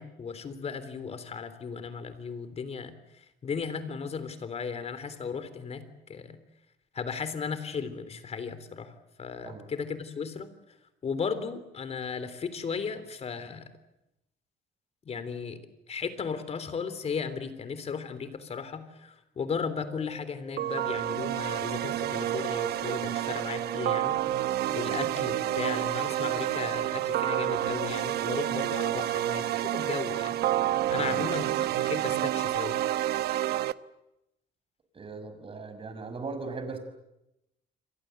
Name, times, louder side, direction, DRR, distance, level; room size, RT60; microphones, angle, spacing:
voice 1, 0.0-5.8 6.1-6.4 6.9-10.5 11.0-13.7 15.1-15.6 15.9-24.2 24.7-31.4 31.7-32.8, left 5 dB, 40° left, 12 dB, 3.6 m, -36 dB
sound 1, 19.5-28.4, left 1 dB, ahead, 3.0 m, -48 dB
sound 2, 20.6-33.7, right 13 dB, 70° right, 0.9 m, -29 dB
voice 2, 34.9-36.8, right 4 dB, 35° right, 9 dB, 5.8 m, -38 dB
29.0 x 23.5 x 8.1 m, 0.88 s
cardioid pair, 110°, 17 cm